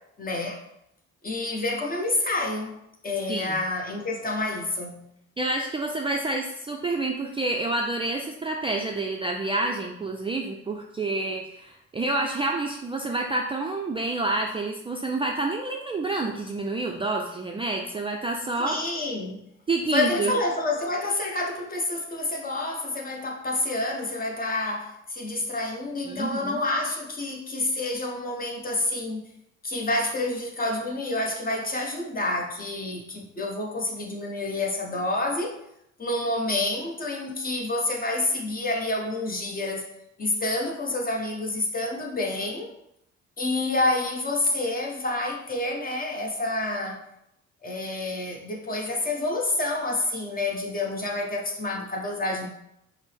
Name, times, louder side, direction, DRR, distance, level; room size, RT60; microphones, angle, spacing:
voice 1, 0.2-0.6 1.2-2.7 3.0-5.1 18.6-19.4 19.9-29.2 29.6-35.6 36.0-39.9 40.2-42.7 43.4-47.0 47.6-52.5, left 2 dB, 30° left, 0 dB, 0.9 m, -28 dB
voice 2, 5.4-18.8 19.7-20.3 26.1-26.6, right 2 dB, 20° right, 1 dB, 0.3 m, -28 dB
5.2 x 2.0 x 3.3 m, 0.79 s
cardioid pair, 90°, 30 cm